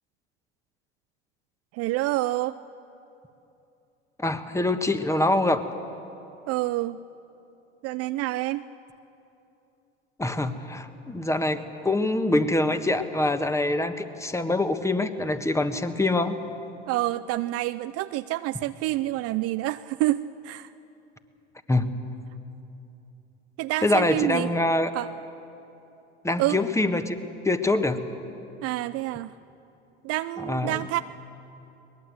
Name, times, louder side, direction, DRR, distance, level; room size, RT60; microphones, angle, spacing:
voice 1, 1.7-2.6 6.5-7.0 7.8-8.6 16.9-20.7 23.6-24.5 24.9-25.1 26.4-26.6 28.6-29.3 30.0-31.0, right 16 dB, 45° right, 13 dB, 0.5 m, -27 dB
voice 2, 4.2-5.6 10.2-16.4 21.7-21.9 23.8-24.9 26.2-27.2 27.4-28.0 30.4-31.0, left 2 dB, 10° left, 9 dB, 1.4 m, -25 dB
22.5 x 20.0 x 7.9 m, 2.9 s
hypercardioid pair, 75°, 35 cm